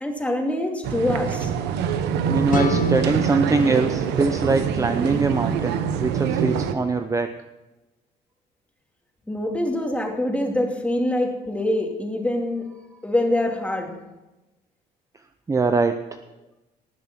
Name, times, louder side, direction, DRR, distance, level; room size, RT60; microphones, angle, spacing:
voice 1, 0.0-1.5 9.3-12.7 13.0-14.0, left 1 dB, 10° left, 2 dB, 2.5 m, -24 dB
sound 1, 0.8-6.7, right 7 dB, 85° right, 1.1 m, -25 dB
voice 2, 2.3-7.3 15.5-16.0, right 4 dB, 20° right, 8 dB, 0.7 m, -22 dB
sound 2, 2.5-5.4, left 5 dB, 50° left, 1.8 m, -31 dB
19.5 x 7.4 x 6.1 m, 1.0 s
cardioid pair, 110°, 17 cm